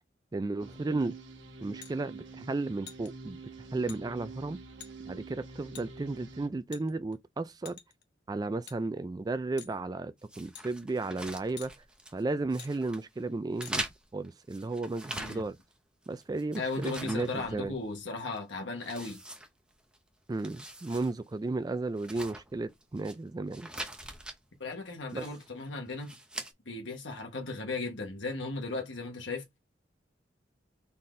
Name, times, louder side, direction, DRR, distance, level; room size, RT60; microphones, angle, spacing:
voice 1, 0.3-1.1 1.6-3.4 3.7-4.6 5.0-7.8 8.3-11.7 12.1-13.8 14.1-15.6 16.1-17.7 20.3-23.7 25.1-25.3, right 3 dB, 20° right, 0.3 m, -34 dB
sound 1, 0.6-6.5, right 3 dB, 80° right, 1.2 m, -47 dB
sound 2, 1.8-1.9 2.9-3.1 3.9-4.0 4.8-4.9 5.7-5.9 6.7-7.2 7.7-8.0 8.7-8.8 9.6-9.8 10.5-10.7 11.6-11.7 12.6-12.7 13.6-13.8, left 9 dB, 65° left, 0.9 m, -47 dB
sound 3, 10.3-12.2 12.5-13.0 13.5-15.7 16.0-18.0 18.3-18.4 18.8-20.0 20.3-21.1 21.4-21.5 22.0-23.1 23.5-24.4 25.1-25.5 26.0-26.5, right 1 dB, 5° right, 0.8 m, -42 dB
voice 2, 15.1-15.4 16.6-19.2 24.6-26.1 26.7-29.4, left 3 dB, 80° left, 1.2 m, -36 dB
4.2 x 3.7 x 3.2 m
head